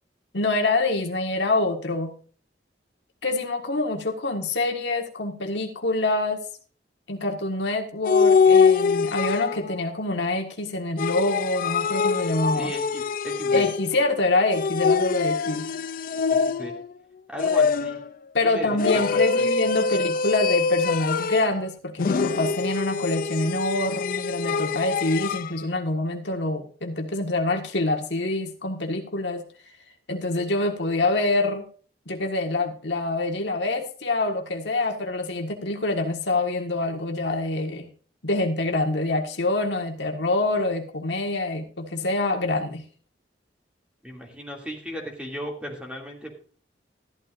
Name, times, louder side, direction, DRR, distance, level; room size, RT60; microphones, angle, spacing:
voice 1, 0.3-2.1 3.2-6.4 7.1-12.7 13.5-15.7 18.3-29.4 30.1-31.6 32.0-37.9 38.2-42.8, left 2 dB, 75° left, 3 dB, 1.7 m, -26 dB
sound 1, 8.1-9.8 11.0-14.1 14.5-16.9 17.4-18.1 18.8-21.6 22.0-25.5, left 5 dB, 50° left, 0.4 m, -23 dB
voice 2, 12.6-13.6 16.3-16.7 17.3-18.0 18.4-18.8 19.1-19.5 44.0-46.4, equal, 5° right, 0 dB, 2.5 m, -36 dB
13.5 x 12.0 x 2.6 m, 0.42 s
head